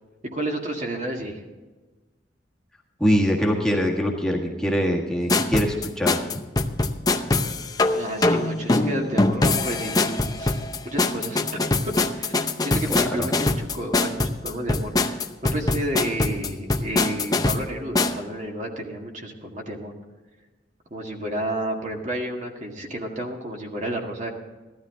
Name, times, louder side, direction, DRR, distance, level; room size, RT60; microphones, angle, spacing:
voice 1, 0.3-1.4 7.9-10.6 10.8-11.9 12.2-19.9 20.9-24.3, right 1 dB, 40° right, 1 dB, 1.9 m, -31 dB
voice 2, 3.0-6.4 12.9-13.3, equal, 5° left, -2 dB, 1.5 m, -23 dB
sound 1, 5.3-18.2, left 2 dB, 20° left, 0.7 m, -23 dB
15.5 x 12.5 x 3.7 m, 1.2 s
head